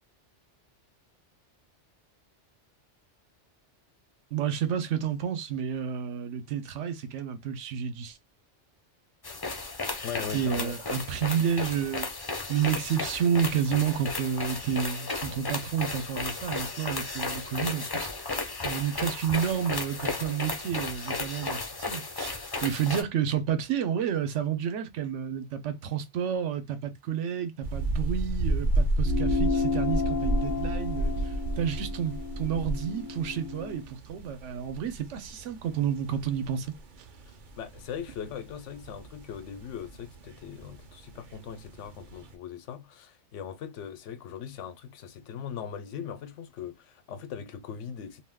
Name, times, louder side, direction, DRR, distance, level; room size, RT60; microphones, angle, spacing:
voice 1, 4.3-8.2 10.3-12.1 12.5-18.1 18.6-21.6 21.9-36.7, right 8 dB, 85° right, 1.0 m, -30 dB
sound 1, 9.2-23.0, left 3 dB, 30° left, 0.4 m, -34 dB
voice 2, 10.0-10.8 37.6-48.2, left 8 dB, 85° left, 0.9 m, -40 dB
sound 2, 27.6-42.4, right 1 dB, 55° right, 0.6 m, -33 dB
sound 3, 29.0-33.9, left 4 dB, 60° left, 0.7 m, -32 dB
2.5 x 2.2 x 3.4 m
omnidirectional pair, 1.2 m